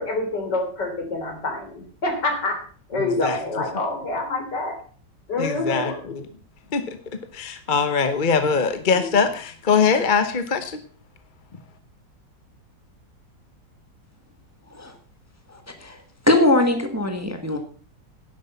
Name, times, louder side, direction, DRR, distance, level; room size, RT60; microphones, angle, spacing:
voice 1, 0.0-2.6 2.9-4.8 5.3-6.0 8.9-9.2, left 2 dB, 65° left, 3 dB, 4.1 m, -27 dB
voice 2, 2.9-3.4 5.4-6.2 6.7-7.0 7.3-10.8, left 5 dB, 35° left, 9 dB, 0.9 m, -22 dB
voice 3, 15.5-16.0 16.2-17.6, left 2 dB, 10° right, 5 dB, 1.5 m, -21 dB
11.5 x 11.0 x 5.6 m, 0.42 s
omnidirectional pair, 2.0 m